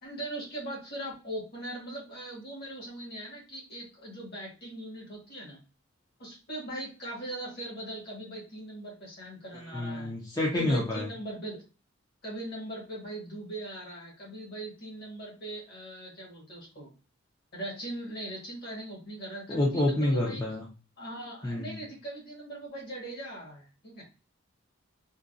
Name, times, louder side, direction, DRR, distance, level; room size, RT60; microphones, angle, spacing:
voice 1, 0.0-5.6 6.2-10.1 10.5-11.6 12.2-16.9 17.5-20.4 21.0-24.0, right 1 dB, 50° left, -3 dB, 1.7 m, -40 dB
voice 2, 9.5-11.1 19.5-20.7 21.4-21.8, left 1 dB, 15° left, -3 dB, 0.5 m, -28 dB
3.8 x 2.3 x 2.6 m, 0.32 s
head